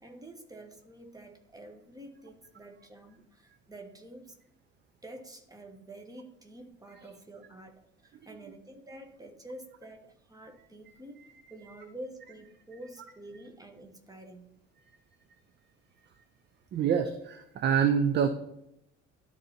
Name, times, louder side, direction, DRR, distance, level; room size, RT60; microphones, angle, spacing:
voice 1, 0.0-4.4 5.0-14.5, right 1 dB, 10° right, 4 dB, 1.1 m, -48 dB
voice 2, 16.7-18.3, right 7 dB, 30° right, 9 dB, 0.5 m, -26 dB
12.0 x 4.1 x 2.9 m, 0.81 s
figure-of-eight pair, 55°, 38 cm